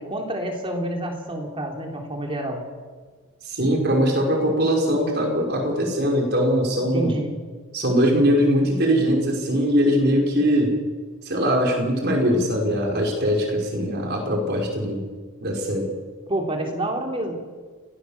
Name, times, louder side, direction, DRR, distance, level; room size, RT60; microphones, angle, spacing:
voice 1, 0.0-2.6 6.9-7.3 16.3-17.4, right 1 dB, 25° right, 2 dB, 3.6 m, -28 dB
voice 2, 3.5-7.1 7.7-10.7 11.3-15.1 15.4-15.9, equal, 50° right, 1 dB, 5.3 m, -21 dB
29.5 x 17.0 x 7.3 m, 1.5 s
head